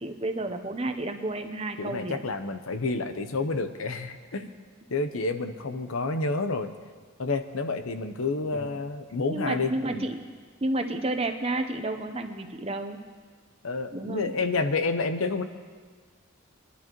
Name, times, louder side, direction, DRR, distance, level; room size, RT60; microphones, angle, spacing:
voice 1, 0.0-2.2 8.5-8.7 9.3-10.2 10.6-13.0 13.9-14.4, right 2 dB, 30° right, 6 dB, 0.8 m, -31 dB
voice 2, 1.8-4.5 4.9-6.7 7.2-10.1 13.6-15.4, left 3 dB, 85° left, 9 dB, 0.8 m, -29 dB
23.0 x 11.5 x 3.0 m, 1.6 s
head